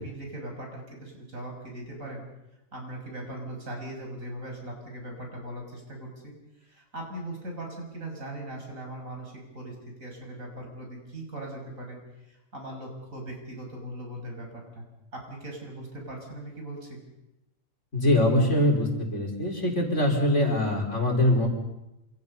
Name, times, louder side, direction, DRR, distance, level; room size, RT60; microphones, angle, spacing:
voice 1, 0.0-2.2 2.7-6.3 6.7-9.7 10.0-12.0 12.5-14.9 15.1-17.0, right 1 dB, 70° right, 1 dB, 7.0 m, -39 dB
voice 2, 17.9-21.5, left 1 dB, 60° left, 1 dB, 5.0 m, -23 dB
27.5 x 27.0 x 5.6 m, 0.94 s
omnidirectional pair, 1.4 m